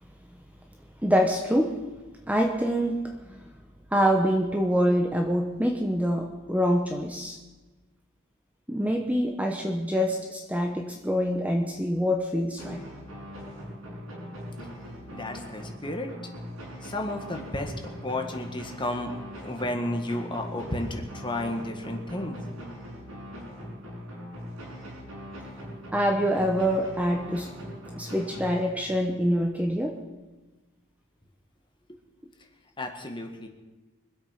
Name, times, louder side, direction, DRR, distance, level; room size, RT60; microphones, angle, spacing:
voice 1, 1.0-1.8 2.3-3.4 3.9-7.4 8.7-12.8 25.9-27.5 28.0-30.0, equal, 5° right, 3 dB, 1.0 m, -25 dB
sound 1, 12.6-29.1, equal, 85° right, 6.1 m, -41 dB
voice 2, 15.1-16.1 16.8-22.4 32.8-33.5, left 1 dB, 25° left, 4 dB, 1.7 m, -32 dB
24.5 x 8.3 x 5.9 m, 1.2 s
head